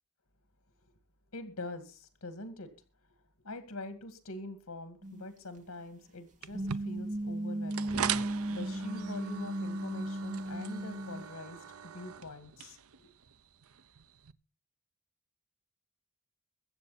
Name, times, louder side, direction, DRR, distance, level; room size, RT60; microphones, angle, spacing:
voice 1, 1.3-2.7 3.4-13.1, left 2 dB, 90° left, 8 dB, 2.1 m, -44 dB
sound 1, 5.0-5.2 6.5-11.2, right 1 dB, 35° right, 2.5 m, -36 dB
sound 2, 6.4-14.3, right 8 dB, 70° right, 0.7 m, -41 dB
23.0 x 8.1 x 4.2 m, 0.33 s
head